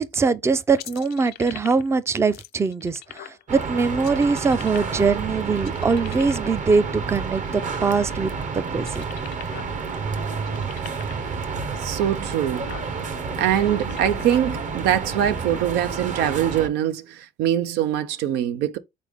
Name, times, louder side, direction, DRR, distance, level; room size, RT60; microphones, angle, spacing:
voice 1, 0.0-9.0, right 4 dB, 15° right, 0.4 m, -22 dB
sound 1, 0.8-2.0 2.3-3.4 3.9-5.2 5.6-6.6 7.1-8.4 8.7-9.7 10.0-10.1 10.4-11.3 11.9-12.0 12.4-12.9 13.5-14.4, left 14 dB, 70° left, 0.4 m, -41 dB
sound 2, 3.5-16.7, right 5 dB, 50° right, 0.9 m, -30 dB
voice 2, 11.8-12.7 13.4-18.8, right 10 dB, 90° right, 0.5 m, -23 dB
4.1 x 3.3 x 3.5 m
cardioid pair, 110°, 17 cm